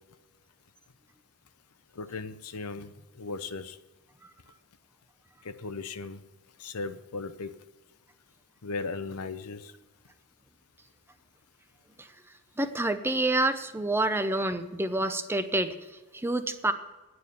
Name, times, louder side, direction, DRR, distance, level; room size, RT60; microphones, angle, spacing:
voice 1, 1.9-3.8 5.4-6.2 6.6-7.5 8.6-9.7, left 4 dB, 85° left, 11 dB, 0.8 m, -37 dB
voice 2, 12.6-15.7 16.1-16.7, right 2 dB, 10° right, 9 dB, 0.6 m, -27 dB
11.0 x 9.7 x 6.8 m, 1.2 s
head